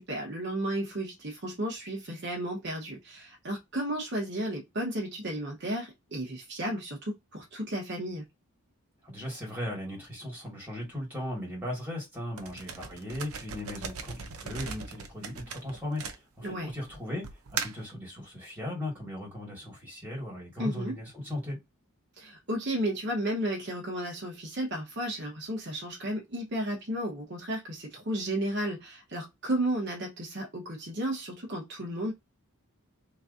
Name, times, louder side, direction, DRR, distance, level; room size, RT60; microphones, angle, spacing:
voice 1, 0.0-8.3 16.4-16.7 20.6-21.0 22.2-32.1, right 1 dB, 50° right, 1.0 m, -33 dB
voice 2, 9.0-21.6, left 1 dB, 10° right, 2.1 m, -37 dB
sound 1, 12.4-16.7 17.2-17.9, right 5 dB, 75° right, 0.7 m, -38 dB
3.5 x 3.1 x 2.6 m
head